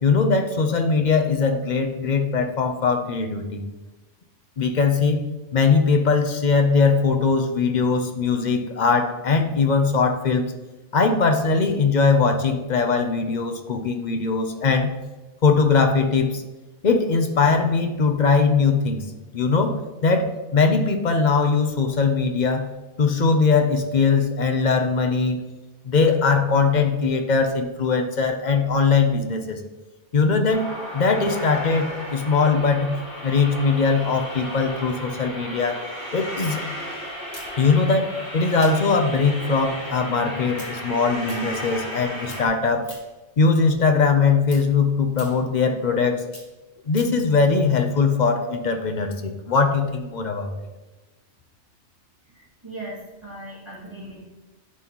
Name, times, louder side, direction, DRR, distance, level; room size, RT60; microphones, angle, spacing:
voice 1, 0.0-3.6 4.6-10.5 10.9-14.9 15.4-16.4 16.8-19.0 19.3-22.7 23.0-25.4 25.8-29.6 30.1-32.9 33.2-35.8 36.1-36.6 37.6-42.9 43.4-46.2 46.9-50.5, left 4 dB, 45° left, 5 dB, 0.7 m, -21 dB
sound 1, 30.5-42.5, equal, 25° left, 2.5 m, -34 dB
sound 2, 37.3-42.0 42.2-43.3 43.6-47.3, left 1 dB, 65° left, 2.1 m, -45 dB
voice 2, 52.3-53.0 53.2-54.2, right 1 dB, 25° right, -8 dB, 2.1 m, -38 dB
11.0 x 4.1 x 3.0 m, 1.1 s
omnidirectional pair, 1.2 m